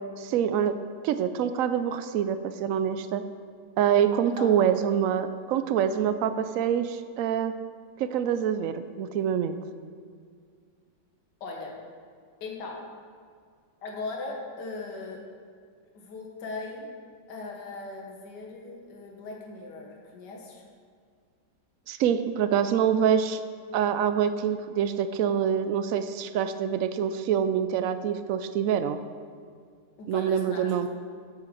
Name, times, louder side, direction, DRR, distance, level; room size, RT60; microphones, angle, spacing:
voice 1, 0.2-0.8 1.0-3.2 3.8-7.5 8.0-9.6 21.9-23.4 23.7-29.0 30.1-30.9, right 8 dB, 75° right, 10 dB, 0.7 m, -25 dB
voice 2, 11.4-11.7 12.4-12.8 13.8-15.2 15.9-16.9 17.3-20.7 30.0-30.9, left 3 dB, 75° left, -1 dB, 1.9 m, -38 dB
8.3 x 7.5 x 6.7 m, 2.1 s
omnidirectional pair, 1.9 m